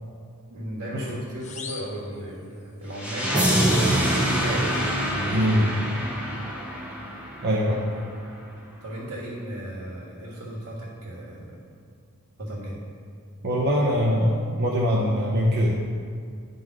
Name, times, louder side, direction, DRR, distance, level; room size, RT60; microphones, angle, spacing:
voice 1, 0.5-5.8 8.8-11.6 12.4-12.8, equal, 85° right, -6 dB, 1.7 m, -35 dB
sound 1, 1.4-2.9, left 5 dB, 30° left, 0.6 m, -42 dB
sound 2, 2.9-7.9, equal, 5° right, 1.0 m, -25 dB
voice 2, 5.3-5.7 7.4-7.8 13.4-15.9, equal, 50° right, -4 dB, 0.7 m, -22 dB
10.5 x 3.9 x 4.7 m, 2.3 s
head